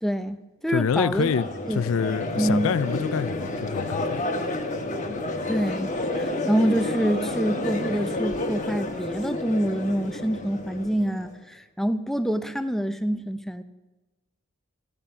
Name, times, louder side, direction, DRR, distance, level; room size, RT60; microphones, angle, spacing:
voice 1, 0.0-1.3 1.7-1.8 2.4-2.7 5.5-13.6, equal, ahead, 0.5 m, -26 dB
voice 2, 0.7-4.2, left 6 dB, 75° left, 0.4 m, -26 dB
Crowd, 1.1-11.3, left 2 dB, 35° left, 1.2 m, -30 dB
14.5 x 9.9 x 5.6 m
head